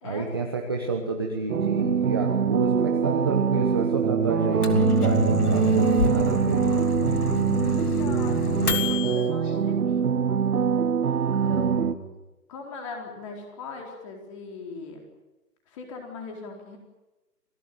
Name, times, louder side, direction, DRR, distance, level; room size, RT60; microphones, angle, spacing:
voice 1, 0.0-6.7 11.3-11.9, right 4 dB, 15° right, 2 dB, 1.1 m, -29 dB
sound 1, 1.5-11.9, right 6 dB, 65° right, 1.1 m, -24 dB
Microwave oven, 4.4-9.2, left 2 dB, 65° left, 3.4 m, -27 dB
voice 2, 7.9-10.1 11.5-11.9 12.5-15.0 15.7-16.8, left 4 dB, 20° left, 2 dB, 4.2 m, -39 dB
27.5 x 19.0 x 9.5 m, 1.0 s
hypercardioid pair, 170°, 48 cm